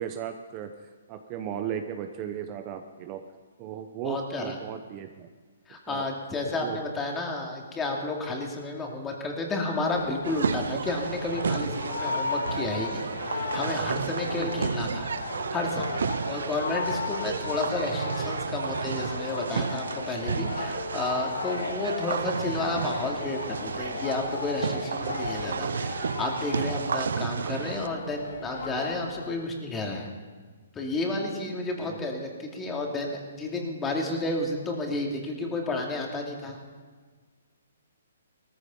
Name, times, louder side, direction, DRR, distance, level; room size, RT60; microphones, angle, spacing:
voice 1, 0.0-3.2 3.6-5.3 5.9-6.0 6.6-6.8 31.8-32.0, right 9 dB, 30° right, 7 dB, 0.9 m, -36 dB
voice 2, 4.0-4.6 5.7-15.1 15.5-16.0 16.3-30.1 30.7-36.6, left 2 dB, 15° left, 1 dB, 2.5 m, -31 dB
sound 1, 9.9-29.3, left 4 dB, 75° left, 2.1 m, -35 dB
sound 2, 10.2-27.9, right 6 dB, 75° right, 0.5 m, -32 dB
17.5 x 14.5 x 5.5 m, 1.5 s
hypercardioid pair, 150°, 0 cm